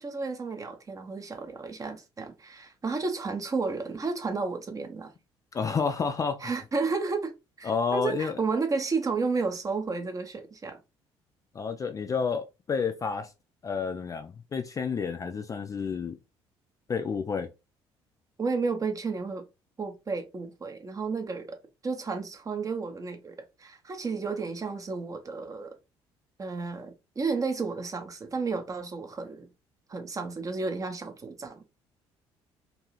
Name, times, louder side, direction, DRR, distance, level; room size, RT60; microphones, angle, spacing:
voice 1, 0.0-5.1 6.4-10.8 18.4-19.4 19.8-25.8 26.4-29.5 29.9-31.7, right 4 dB, 25° right, 0.6 m, -32 dB
voice 2, 5.5-6.5 7.6-8.4 11.5-13.3 13.6-16.2 16.9-17.5, left 5 dB, 25° left, 0.3 m, -30 dB
2.6 x 2.3 x 3.0 m
figure-of-eight pair, 50°, 14 cm